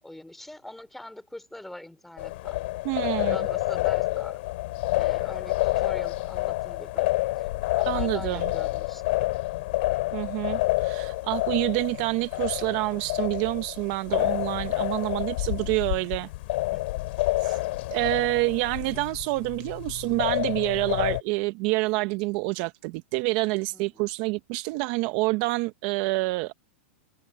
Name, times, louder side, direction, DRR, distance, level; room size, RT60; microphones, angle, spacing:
voice 1, 0.0-2.6 3.1-4.4 5.0-7.5 7.7-9.3 16.7-16.8 17.4-17.7 23.7-24.0, left 1 dB, 5° left, 4.2 m, -43 dB
sound 1, 2.2-21.2, left 19 dB, 60° left, 2.5 m, -28 dB
voice 2, 2.8-3.4 7.9-8.5 10.1-16.3 17.4-17.5 17.9-26.5, right 23 dB, 45° right, 0.9 m, -27 dB
supercardioid pair, 145°, 7 cm